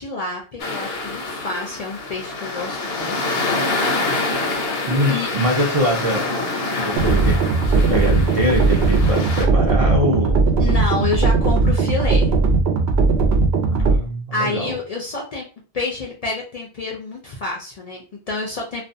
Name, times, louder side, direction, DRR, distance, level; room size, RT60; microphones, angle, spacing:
voice 1, 0.0-3.2 5.1-5.3 10.6-12.3 14.3-15.5 15.7-18.8, left 3 dB, 50° left, -1 dB, 0.5 m, -28 dB
sound 1, 0.6-9.5, left 2 dB, 75° left, 0.9 m, -26 dB
voice 2, 4.9-6.3 6.8-10.4 13.7-14.7, equal, 45° right, -1 dB, 0.5 m, -23 dB
sound 2, 7.0-14.0, right 3 dB, 80° right, 0.8 m, -18 dB
2.4 x 2.2 x 2.5 m, 0.36 s
omnidirectional pair, 1.0 m